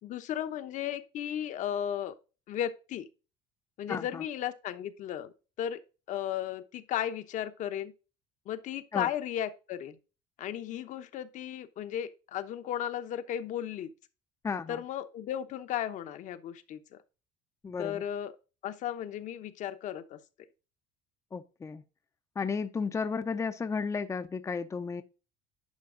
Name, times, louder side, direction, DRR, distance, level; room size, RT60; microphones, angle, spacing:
voice 1, 0.0-2.1 2.5-3.1 3.8-5.3 5.6-5.8 6.1-7.9 8.5-10.0 10.4-13.9 14.7-17.0 17.8-18.3 18.6-20.2, left 10 dB, 55° left, 0.9 m, -35 dB
voice 2, 3.9-4.2 8.9-9.1 14.4-14.8 17.6-18.0 21.3-21.8 22.4-25.0, left 5 dB, 20° left, 0.6 m, -33 dB
10.5 x 5.3 x 3.8 m
supercardioid pair, 100°, 15 cm